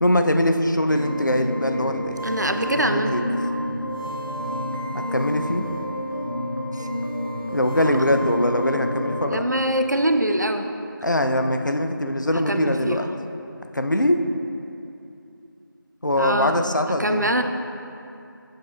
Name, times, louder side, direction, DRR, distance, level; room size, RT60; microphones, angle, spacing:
voice 1, 0.0-2.2 2.7-3.2 4.9-5.7 7.5-9.4 11.0-13.1 13.7-14.2 16.0-17.3, left 1 dB, 60° left, 6 dB, 0.5 m, -22 dB
sound 1, 0.9-9.3, equal, 90° left, 1.3 m, -29 dB
voice 2, 2.2-3.2 6.7-6.9 7.8-8.1 9.3-10.7 12.5-13.2 16.2-16.7 17.0-17.4, right 1 dB, 55° right, 6 dB, 0.4 m, -24 dB
9.2 x 7.5 x 2.3 m, 2.7 s
figure-of-eight pair, 180°, 12 cm